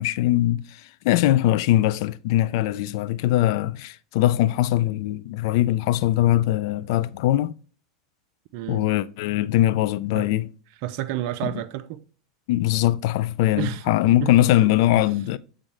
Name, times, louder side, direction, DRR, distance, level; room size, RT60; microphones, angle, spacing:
voice 1, 0.0-7.5 8.7-10.5 11.4-11.5 12.5-15.4, left 14 dB, 60° left, 0.4 m, -21 dB
voice 2, 8.5-8.9 10.1-10.3 10.8-12.0 13.6-13.8 14.2-14.3 14.6-15.0, right 14 dB, 55° right, 0.5 m, -31 dB
7.8 x 3.8 x 3.2 m
hypercardioid pair, 95°, 2 cm